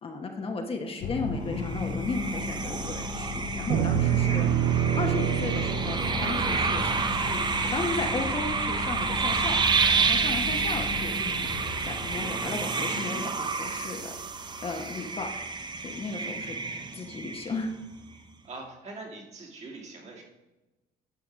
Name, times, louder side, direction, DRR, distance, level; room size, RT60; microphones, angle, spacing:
voice 1, 0.0-4.6 4.9-9.6 10.0-11.5 11.9-15.3 15.8-16.6 16.9-17.7, left 3 dB, 35° left, 3 dB, 1.2 m, -35 dB
sound 1, 1.0-15.5, left 4 dB, 85° left, 1.1 m, -37 dB
sound 2, 1.6-17.9, right 4 dB, 25° right, 0.7 m, -29 dB
sound 3, 3.7-8.1, right 11 dB, 65° right, 0.5 m, -28 dB
voice 2, 18.4-20.2, right 3 dB, 40° right, 0 dB, 2.3 m, -42 dB
11.5 x 4.7 x 4.6 m, 1.1 s
cardioid pair, 110°, 17 cm